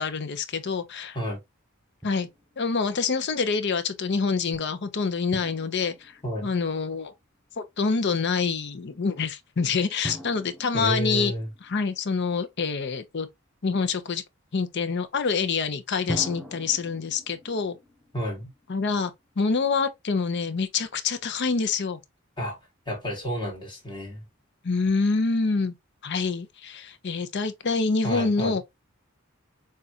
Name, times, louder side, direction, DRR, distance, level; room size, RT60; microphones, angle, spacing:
voice 1, 0.0-1.2 2.0-2.3 2.6-7.1 7.6-11.3 11.6-13.3 13.6-14.2 14.5-17.8 18.7-22.0 24.6-25.7 26.0-28.6, left 4 dB, 55° left, 0.7 m, -26 dB
Drum, 2.0-2.8 5.3-7.1 10.0-12.5 16.1-19.2, equal, ahead, 0.8 m, -42 dB
voice 2, 10.7-11.5 18.1-18.5 22.4-22.6 22.9-24.2 28.0-28.6, equal, 25° left, 1.9 m, -30 dB
6.6 x 2.5 x 2.8 m
head